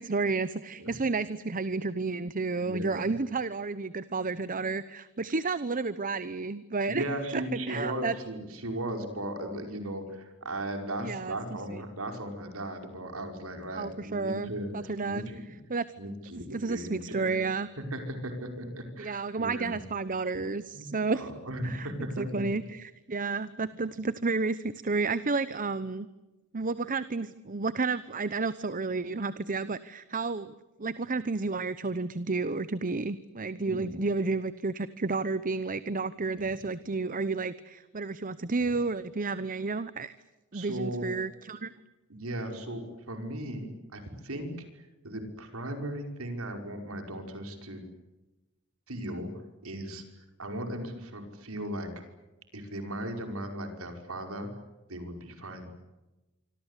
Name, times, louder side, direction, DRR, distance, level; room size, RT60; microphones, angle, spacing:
voice 1, 0.0-7.0 7.3-8.2 11.0-11.4 11.7-11.8 13.7-15.2 15.7-15.8 16.5-17.7 19.0-21.3 21.6-21.9 22.2-26.1 26.5-30.5 30.8-40.1 40.5-41.7, right 3 dB, 40° right, 15 dB, 0.9 m, -31 dB
voice 2, 2.6-3.1 6.9-15.4 16.0-17.3 17.8-19.8 20.7-20.9 21.1-22.6 33.6-34.0 40.5-41.1 42.1-44.5 44.7-47.8 48.9-49.3 49.6-51.9 52.5-54.5 54.9-55.6, right 1 dB, 75° right, 5 dB, 5.4 m, -37 dB
26.5 x 25.5 x 8.3 m, 1.1 s
head